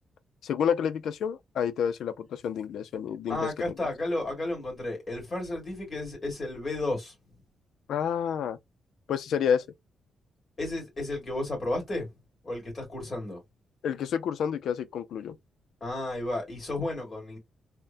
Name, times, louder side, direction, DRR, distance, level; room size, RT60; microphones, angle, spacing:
voice 1, 0.4-3.5 7.9-8.6 9.1-9.7 13.8-15.4, left 8 dB, 80° left, 0.4 m, -29 dB
voice 2, 3.3-7.4 10.6-12.1 12.4-13.4 15.8-17.4, left 2 dB, 30° left, 2.1 m, -33 dB
3.4 x 2.0 x 2.5 m
wide cardioid pair, 155°, 0 cm